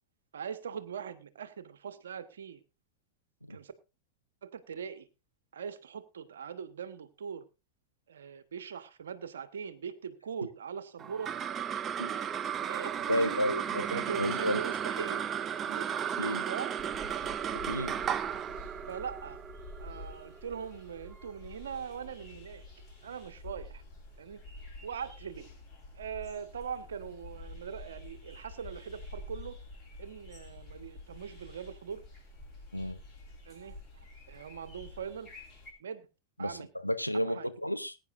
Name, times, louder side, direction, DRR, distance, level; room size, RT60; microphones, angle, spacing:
voice 1, 0.3-2.6 3.5-3.7 4.4-5.1 5.5-7.4 8.1-11.3 11.7-11.9 12.6-15.9 16.4-16.8 18.9-19.4 19.8-22.7 23.0-23.8 24.2-24.4 24.8-25.5 25.9-29.6 30.0-32.0 33.4-33.8 34.3-35.3 35.8-36.1 36.4-36.7 37.1-37.5, right 7 dB, 65° right, 1.3 m, -41 dB
sound 1, 11.0-21.6, right 8 dB, 25° right, 0.5 m, -35 dB
voice 2, 13.1-14.6 16.2-16.5 17.7-18.0 32.7-33.0 36.4-38.0, equal, 90° left, 0.8 m, -32 dB
sound 2, 16.8-35.7, left 2 dB, 25° left, 6.8 m, -49 dB
20.5 x 9.6 x 2.6 m
figure-of-eight pair, 90°, 0 cm